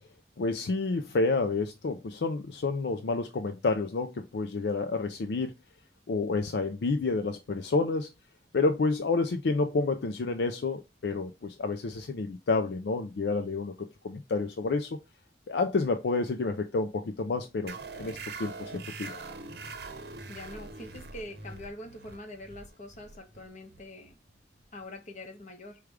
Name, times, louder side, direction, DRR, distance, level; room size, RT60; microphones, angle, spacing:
voice 1, 0.4-5.5 6.1-8.1 8.5-13.7 14.0-15.0 15.5-19.2, left 3 dB, 70° left, 0.4 m, -29 dB
sound 1, 17.7-24.8, right 3 dB, 60° right, 0.7 m, -43 dB
voice 2, 20.3-24.2 24.7-25.8, left 1 dB, 45° left, 1.1 m, -44 dB
4.7 x 2.3 x 4.8 m
head